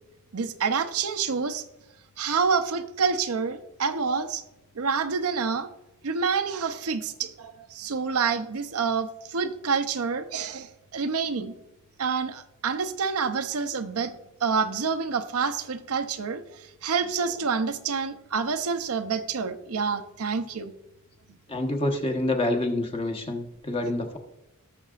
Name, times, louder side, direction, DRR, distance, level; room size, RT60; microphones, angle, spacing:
voice 1, 0.3-1.6 2.2-4.4 4.7-5.7 6.0-11.5 12.0-20.7 21.3-21.4, right 5 dB, 80° right, 8 dB, 0.7 m, -28 dB
voice 2, 21.5-24.2, left 1 dB, 25° left, 4 dB, 1.1 m, -27 dB
17.5 x 6.6 x 2.5 m, 0.92 s
head